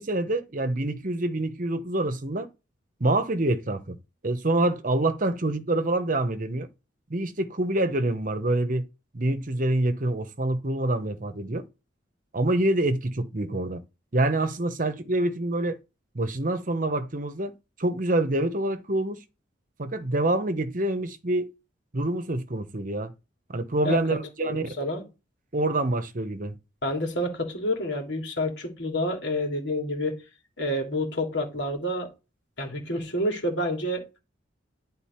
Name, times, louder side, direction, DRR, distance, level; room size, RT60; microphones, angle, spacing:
voice 1, 0.0-2.5 3.0-4.0 4.2-6.7 7.1-8.8 9.1-11.6 12.3-13.8 14.1-15.8 16.1-17.5 17.8-19.2 19.8-21.5 21.9-23.1 23.5-24.6 25.5-26.5, right 1 dB, 45° right, 1.0 m, -26 dB
voice 2, 23.8-25.0 26.8-30.2 30.6-32.1 32.6-34.2, left 1 dB, 65° left, 2.9 m, -29 dB
10.5 x 4.0 x 4.4 m
head